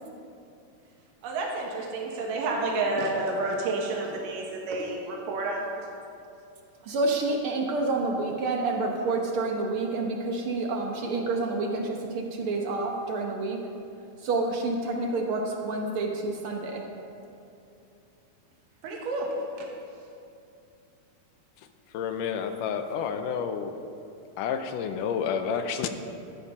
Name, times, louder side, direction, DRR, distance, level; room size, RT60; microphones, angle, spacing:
voice 1, 1.2-5.7 18.8-19.7, right 2 dB, 85° right, 0 dB, 2.9 m, -30 dB
voice 2, 6.8-13.6 14.2-16.9, right 3 dB, 65° right, 1 dB, 1.4 m, -28 dB
voice 3, 21.9-23.7 24.4-25.9, left 7 dB, 85° left, 8 dB, 2.2 m, -30 dB
13.0 x 10.0 x 5.4 m, 2.6 s
omnidirectional pair, 3.7 m